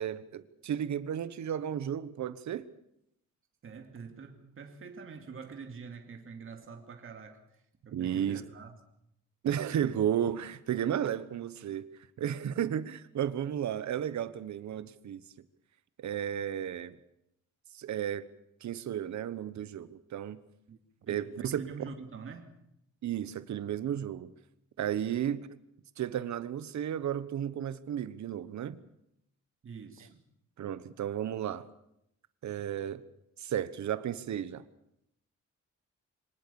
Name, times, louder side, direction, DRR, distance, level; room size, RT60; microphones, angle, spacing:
voice 1, 0.0-2.6 7.9-8.4 9.4-11.8 12.2-15.2 16.0-17.0 17.7-18.3 18.6-20.4 21.1-21.9 23.0-24.3 24.8-25.5 26.0-28.8 30.6-31.7 32.4-33.0 33.4-34.6, right 10 dB, 65° right, 14 dB, 1.2 m, -33 dB
voice 2, 3.6-8.8 20.7-22.5 25.1-25.2 29.6-30.2, right 5 dB, 45° right, 4 dB, 2.5 m, -46 dB
24.5 x 19.0 x 7.0 m, 0.78 s
wide cardioid pair, 170°, 30 cm